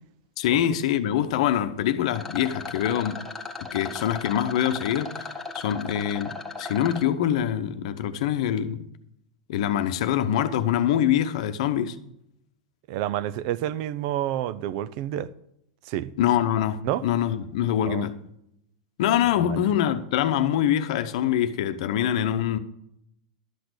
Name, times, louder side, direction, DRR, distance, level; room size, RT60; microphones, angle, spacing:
voice 1, 0.4-3.2 3.7-8.9 9.5-11.9 16.2-18.2 19.0-22.6, left 10 dB, 60° left, 0.9 m, -24 dB
Rattle, 2.1-7.1, left 3 dB, 10° left, 1.4 m, -36 dB
voice 2, 12.9-15.3 15.8-16.1 16.8-17.0 17.8-18.1 19.5-19.6, right 12 dB, 55° right, 0.6 m, -29 dB
12.0 x 6.0 x 6.5 m
hypercardioid pair, 110°, 4 cm